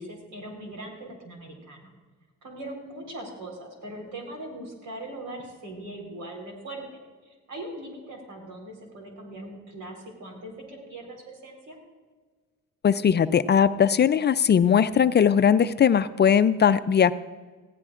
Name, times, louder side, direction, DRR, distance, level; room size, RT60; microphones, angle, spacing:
voice 1, 0.0-1.9 2.4-6.8 7.2-11.8, right 1 dB, 75° right, 1 dB, 4.2 m, -40 dB
voice 2, 12.8-17.1, left 8 dB, 35° left, 13 dB, 0.4 m, -19 dB
19.0 x 15.0 x 2.5 m, 1.4 s
cardioid pair, 90°, 30 cm